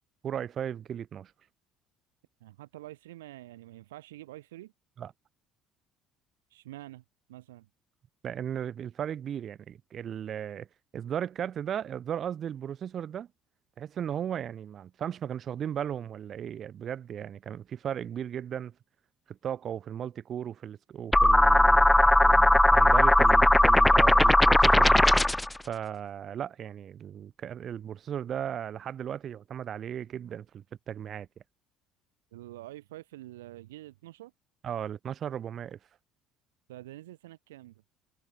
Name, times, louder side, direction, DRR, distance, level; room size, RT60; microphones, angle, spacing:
voice 1, 0.2-1.3 5.0-5.1 8.2-10.7 10.9-13.3 13.8-18.7 19.3-25.1 25.7-31.3 34.6-35.8, right 9 dB, 45° right, 0.6 m, -36 dB
voice 2, 2.4-4.7 6.5-7.0 7.3-7.7 32.3-34.3 36.7-37.7, right 16 dB, 75° right, 3.7 m, -46 dB
sound 1, 21.1-25.5, left 1 dB, 10° left, 0.4 m, -19 dB
figure-of-eight pair, 60°, 0 cm